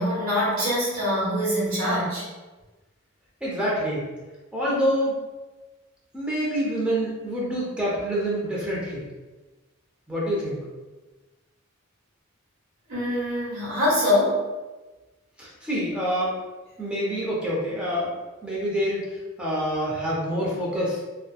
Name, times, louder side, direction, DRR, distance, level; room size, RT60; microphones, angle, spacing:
voice 1, 0.0-2.2 12.9-14.4, left 1 dB, 85° right, -7 dB, 1.4 m, -24 dB
voice 2, 3.4-4.1 4.5-5.2 6.1-9.0 10.1-10.6 15.4-16.3 16.8-18.1 18.4-19.0 19.4-21.0, equal, 5° right, -7 dB, 0.7 m, -26 dB
3.0 x 2.2 x 2.3 m, 1.2 s
head